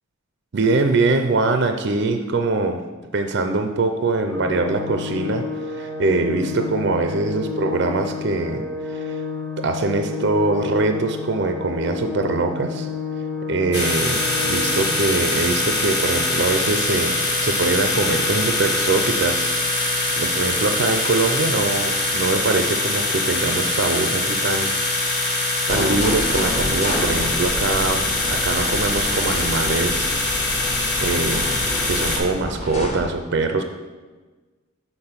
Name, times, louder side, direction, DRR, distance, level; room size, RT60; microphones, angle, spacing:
voice 1, 0.5-2.8 3.1-9.2 9.6-12.9 13.5-24.7 25.7-33.6, right 3 dB, 50° right, 6 dB, 0.4 m, -23 dB
Organ, 4.3-15.3, left 4 dB, ahead, 0.7 m, -30 dB
sound 1, 13.7-32.2, left 2 dB, 50° left, 1.2 m, -23 dB
sound 2, 25.7-33.0, left 1 dB, 30° left, 1.2 m, -29 dB
6.8 x 4.1 x 5.6 m, 1.3 s
head